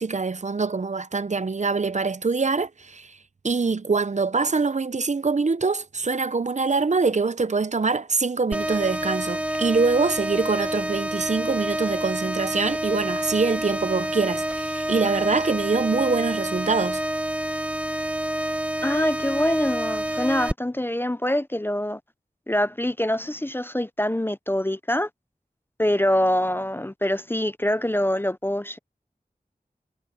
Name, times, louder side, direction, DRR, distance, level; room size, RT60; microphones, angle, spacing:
voice 1, 0.0-3.2 3.4-17.0, right 4 dB, 55° right, 0.6 m, -24 dB
sound 1, 8.5-20.5, right 1 dB, 10° right, 0.8 m, -28 dB
voice 2, 18.8-22.0 22.5-25.1 25.8-28.8, left 1 dB, 15° left, 0.5 m, -24 dB
wide cardioid pair, 55°, 15 cm